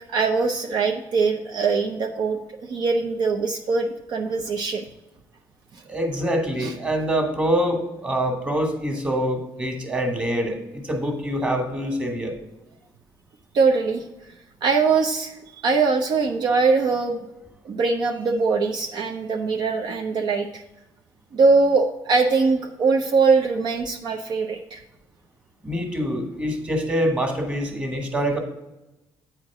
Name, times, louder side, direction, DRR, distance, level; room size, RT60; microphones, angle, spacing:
voice 1, 0.1-4.8 6.6-6.7 13.5-14.0 14.6-15.3 15.6-17.2 17.6-20.5 21.3-24.8, right 4 dB, 65° right, 4 dB, 0.7 m, -22 dB
voice 2, 5.9-12.4 25.6-28.4, equal, 15° right, 3 dB, 1.7 m, -25 dB
8.7 x 4.6 x 4.8 m, 0.96 s
cardioid pair, 110°, 8 cm